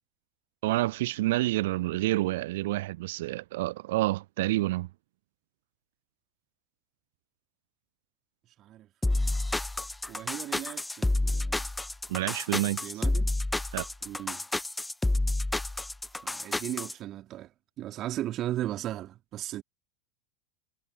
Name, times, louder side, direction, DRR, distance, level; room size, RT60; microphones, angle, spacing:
voice 1, 0.6-4.9 12.1-12.9 13.7-13.8, right 18 dB, 55° right, 0.4 m, -28 dB
voice 2, 8.6-9.2 10.1-11.6 12.8-13.3 14.0-14.4 16.2-17.5 17.8-19.6, right 13 dB, 35° right, 2.7 m, -36 dB
sound 1, 9.0-16.9, left 2 dB, 5° left, 0.6 m, -29 dB
figure-of-eight pair, 85°, 0 cm